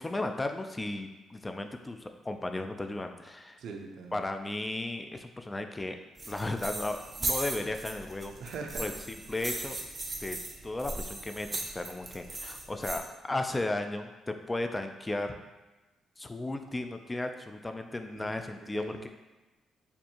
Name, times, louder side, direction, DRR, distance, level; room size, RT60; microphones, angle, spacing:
voice 1, 0.0-3.6 4.1-6.0 6.3-8.3 8.8-9.8 10.2-10.4 10.6-15.3 16.2-19.1, left 2 dB, 20° left, 6 dB, 0.3 m, -35 dB
voice 2, 3.6-4.3 8.4-8.9 18.1-19.1, right 4 dB, 70° right, 3 dB, 0.5 m, -42 dB
sound 1, 6.2-13.0, right 2 dB, 30° right, 0.6 m, -38 dB
4.3 x 2.5 x 2.8 m, 1.2 s
cardioid pair, 90°, 0 cm